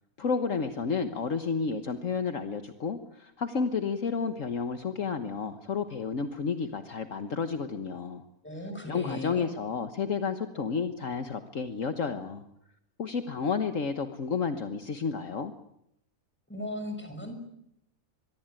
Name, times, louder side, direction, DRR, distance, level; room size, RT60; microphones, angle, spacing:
voice 1, 0.2-8.2 8.9-12.4 13.0-15.5, left 5 dB, 60° left, 8 dB, 1.6 m, -31 dB
voice 2, 8.4-9.5 16.5-17.4, left 1 dB, 5° left, 5 dB, 6.2 m, -37 dB
24.0 x 23.0 x 9.1 m, 0.78 s
omnidirectional pair, 1.5 m